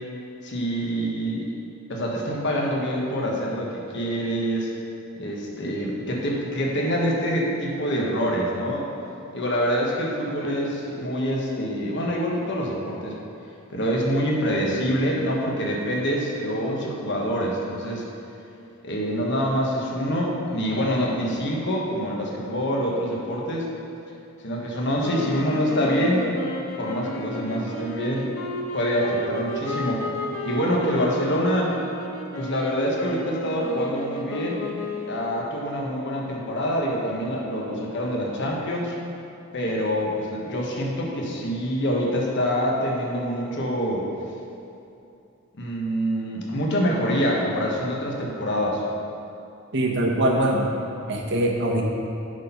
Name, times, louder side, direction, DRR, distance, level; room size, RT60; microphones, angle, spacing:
voice 1, 0.4-1.5 1.9-4.7 5.2-8.9 9.3-13.2 13.7-18.1 18.8-23.7 24.4-26.3 26.8-28.3 28.7-30.0 30.4-31.7 32.4-34.6 35.1-39.0 39.5-44.0 45.6-48.8, equal, 60° left, -2 dB, 1.3 m, -25 dB
sound 1, 25.0-35.4, left 1 dB, 90° left, 1.0 m, -33 dB
voice 2, 49.7-50.7 51.1-51.8, right 1 dB, 60° right, 0 dB, 1.1 m, -22 dB
9.5 x 4.3 x 5.7 m, 2.7 s
head